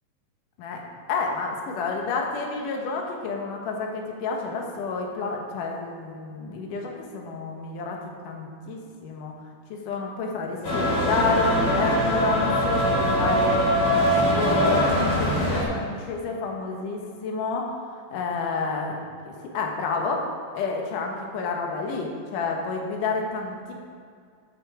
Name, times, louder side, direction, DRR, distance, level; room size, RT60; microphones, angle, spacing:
voice 1, 1.1-8.0 8.2-9.3 9.7-13.7 14.1-19.0 19.3-20.2 20.5-23.7, left 4 dB, 70° left, 1 dB, 2.7 m, -30 dB
sound 1, 10.6-15.6, equal, 40° left, 3.0 m, -22 dB
11.5 x 7.4 x 4.9 m, 2.3 s
omnidirectional pair, 3.9 m